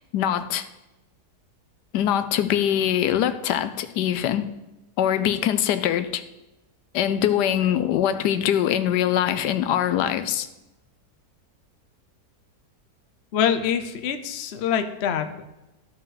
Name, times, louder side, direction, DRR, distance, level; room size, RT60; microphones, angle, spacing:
voice 1, 0.1-0.6 1.9-4.5 5.0-6.2 6.9-10.5, left 10 dB, 80° left, 12 dB, 1.2 m, -23 dB
voice 2, 13.3-15.5, left 8 dB, 55° left, 8 dB, 0.8 m, -25 dB
13.5 x 5.4 x 4.0 m, 1.0 s
omnidirectional pair, 1.8 m